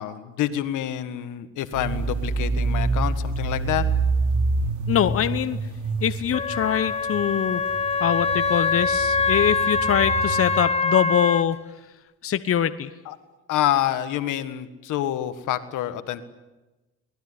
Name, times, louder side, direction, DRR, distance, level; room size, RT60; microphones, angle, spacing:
voice 1, 0.0-3.8 13.0-13.1 13.5-16.2, left 12 dB, 85° left, 11 dB, 1.7 m, -27 dB
sound 1, 1.7-10.7, right 3 dB, 75° right, 3.5 m, -27 dB
voice 2, 4.9-5.6 6.0-7.6 8.0-11.6 12.2-12.9, left 9 dB, 50° left, 12 dB, 1.0 m, -23 dB
Wind instrument woodwind instrument, 6.3-11.4, left 4 dB, 20° left, 1.2 m, -24 dB
23.0 x 19.5 x 9.8 m, 1.1 s
cardioid pair, 90°, 30 cm